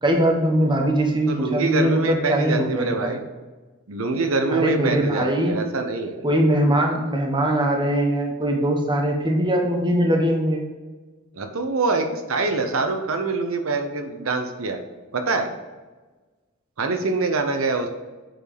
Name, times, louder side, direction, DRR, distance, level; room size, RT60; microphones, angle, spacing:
voice 1, 0.0-3.1 4.5-5.6 6.2-10.7, right 1 dB, 20° right, 1 dB, 1.1 m, -21 dB
voice 2, 1.3-3.2 3.9-6.2 11.4-14.8 15.1-15.5 16.8-17.9, right 3 dB, 80° right, 6 dB, 0.8 m, -24 dB
7.6 x 4.7 x 5.1 m, 1.3 s
head